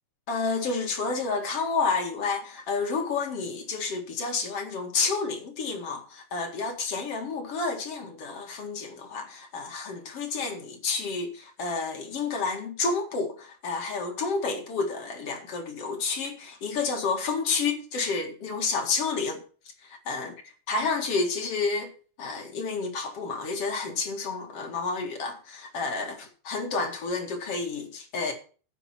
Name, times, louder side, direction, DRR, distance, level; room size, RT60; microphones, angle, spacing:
voice 1, 0.3-19.4 19.8-20.3 20.7-21.9 22.2-28.3, left 4 dB, 45° left, 2.6 m, -30 dB
12.0 x 9.3 x 4.5 m
omnidirectional pair, 4.3 m